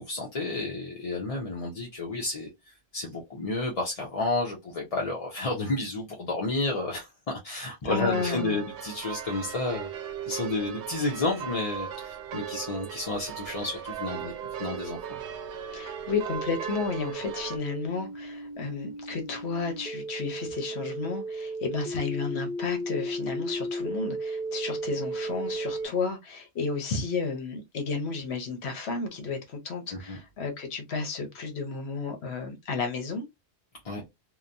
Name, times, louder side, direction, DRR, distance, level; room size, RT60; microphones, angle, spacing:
voice 1, 0.0-7.1 7.4-9.9 10.2-14.3 14.6-15.0 29.9-30.2 33.8-34.0, left 2 dB, 40° left, 0.6 m, -31 dB
voice 2, 7.8-8.6 15.7-33.2, left 4 dB, 70° left, 1.0 m, -32 dB
sound 1, 8.0-17.6, right 9 dB, 75° right, 0.8 m, -38 dB
sound 2, 12.7-25.9, right 1 dB, 50° right, 0.7 m, -36 dB
2.9 x 2.1 x 2.5 m
omnidirectional pair, 1.2 m